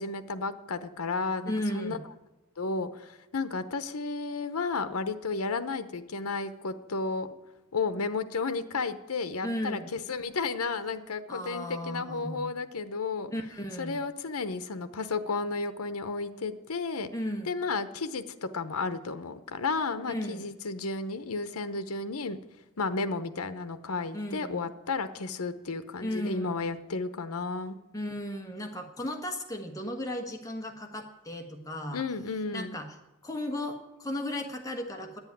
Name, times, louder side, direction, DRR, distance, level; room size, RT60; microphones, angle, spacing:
voice 1, 0.0-2.0 2.6-7.3 7.7-13.3 13.8-17.1 17.5-22.4 22.8-27.8 31.9-32.7, left 4 dB, 80° left, 10 dB, 0.8 m, -33 dB
voice 2, 1.4-2.0 9.4-9.9 11.3-12.5 13.3-14.0 17.1-17.6 20.1-20.4 24.1-24.7 26.0-26.8 27.9-32.0 32.5-32.9 33.2-35.2, left 1 dB, 15° left, 3 dB, 1.3 m, -35 dB
11.0 x 8.1 x 9.3 m, 0.96 s
head